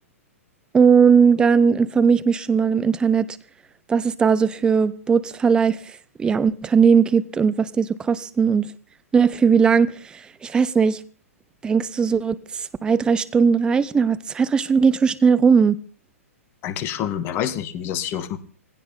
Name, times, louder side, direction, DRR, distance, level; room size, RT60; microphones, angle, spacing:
voice 1, 0.7-3.3 3.9-5.8 6.2-8.7 9.1-11.0 11.6-15.8, right 6 dB, 10° right, 0.7 m, -18 dB
voice 2, 16.6-18.4, left 10 dB, 30° left, 1.8 m, -27 dB
19.0 x 16.5 x 3.8 m
figure-of-eight pair, 115°, 8 cm